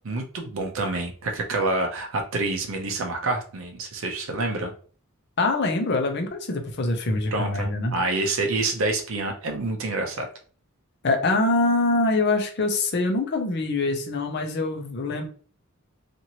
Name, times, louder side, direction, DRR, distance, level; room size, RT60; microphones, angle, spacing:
voice 1, 0.0-4.7 7.3-10.3, right 2 dB, 65° right, 3 dB, 0.6 m, -27 dB
voice 2, 5.4-7.9 11.0-15.3, left 2 dB, 50° left, 4 dB, 0.6 m, -24 dB
2.8 x 2.5 x 2.8 m, 0.42 s
head